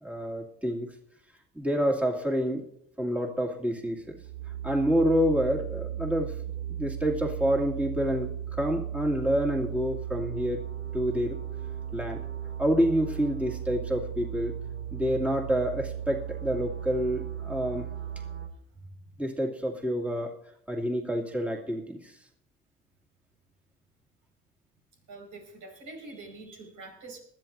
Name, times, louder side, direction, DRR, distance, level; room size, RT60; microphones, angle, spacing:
voice 1, 0.0-0.9 1.5-2.6 3.0-4.2 4.6-6.3 6.7-10.7 10.9-11.4 11.9-12.2 12.6-14.5 14.9-17.9 19.2-20.4 20.7-22.1, equal, 5° right, 0 dB, 2.3 m, -28 dB
sound 1, 4.0-18.5, right 10 dB, 50° right, 2.0 m, -36 dB
voice 2, 25.1-27.2, right 2 dB, 80° right, 2 dB, 5.2 m, -45 dB
20.5 x 13.0 x 2.6 m, 0.69 s
cardioid pair, 90°, 30 cm